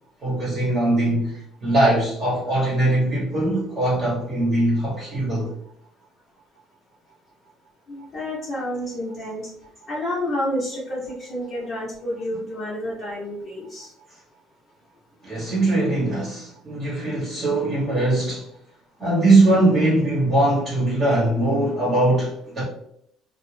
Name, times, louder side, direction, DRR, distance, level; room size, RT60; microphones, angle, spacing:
voice 1, 0.2-5.5 15.2-18.5 19.0-22.6, right 2 dB, 35° right, 1.0 m, -21 dB
voice 2, 7.9-9.4 9.9-13.9, left 1 dB, 30° left, 0.7 m, -29 dB
2.4 x 2.1 x 3.2 m
cardioid pair, 150°, 0 cm